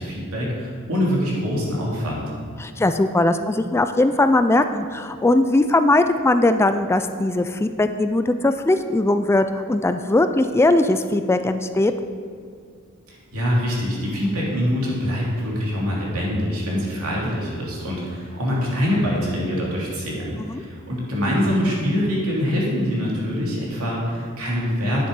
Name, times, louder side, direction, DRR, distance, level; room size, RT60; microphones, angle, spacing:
voice 1, 0.0-2.2 13.1-25.1, equal, 85° right, -4 dB, 2.9 m, -24 dB
voice 2, 2.6-11.9 20.4-20.6, left 2 dB, 10° left, 9 dB, 0.3 m, -19 dB
9.9 x 7.3 x 5.4 m, 2.2 s
head